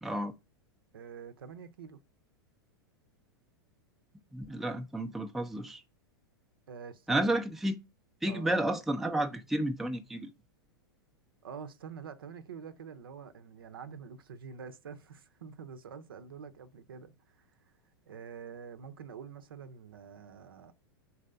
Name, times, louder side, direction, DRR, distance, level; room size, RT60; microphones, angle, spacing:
voice 1, 0.0-0.3 4.3-5.8 7.1-7.8 8.2-10.3, right 1 dB, ahead, 0.5 m, -31 dB
voice 2, 0.9-2.0 6.7-7.4 8.3-8.6 11.4-17.5 18.0-20.7, right 6 dB, 65° right, 0.7 m, -46 dB
4.7 x 4.1 x 5.4 m
figure-of-eight pair, 95°, 13 cm